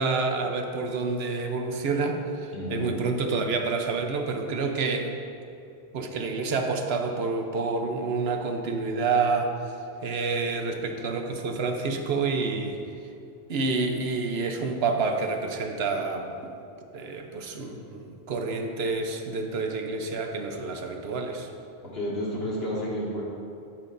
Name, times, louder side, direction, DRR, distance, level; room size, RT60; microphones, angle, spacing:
voice 1, 0.0-5.1 5.9-9.5 10.0-12.8 13.5-16.5 16.9-21.5, right 4 dB, 75° right, 4 dB, 1.0 m, -28 dB
voice 2, 2.5-3.0 21.8-23.2, equal, 70° left, -6 dB, 2.2 m, -31 dB
12.0 x 7.5 x 2.6 m, 2.6 s
omnidirectional pair, 1.1 m